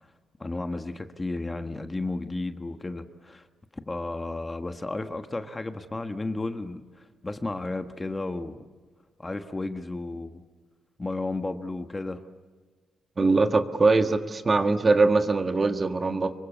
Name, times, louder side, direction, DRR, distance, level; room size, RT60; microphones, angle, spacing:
voice 1, 0.4-3.4 3.9-8.6 9.2-10.4 11.0-12.2, left 2 dB, 20° left, 7 dB, 1.4 m, -33 dB
voice 2, 13.2-16.3, right 3 dB, 30° right, 7 dB, 1.6 m, -22 dB
26.5 x 23.5 x 8.5 m, 1.4 s
cardioid pair, 125°, 0 cm